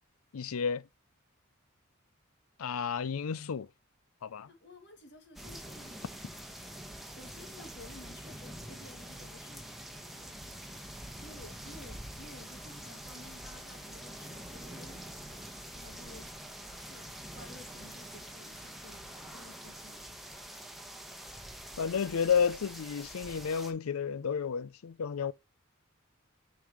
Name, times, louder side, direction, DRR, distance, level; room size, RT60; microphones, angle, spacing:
voice 1, 0.3-0.8 2.6-3.7 4.2-4.5 21.8-25.3, left 6 dB, 85° left, 0.5 m, -31 dB
voice 2, 4.5-6.6 7.1-10.4 11.2-16.4 16.7-20.2, left 2 dB, 55° left, 2.3 m, -54 dB
sound 1, 5.4-23.7, right 1 dB, ahead, 1.2 m, -46 dB
7.2 x 5.3 x 3.0 m
head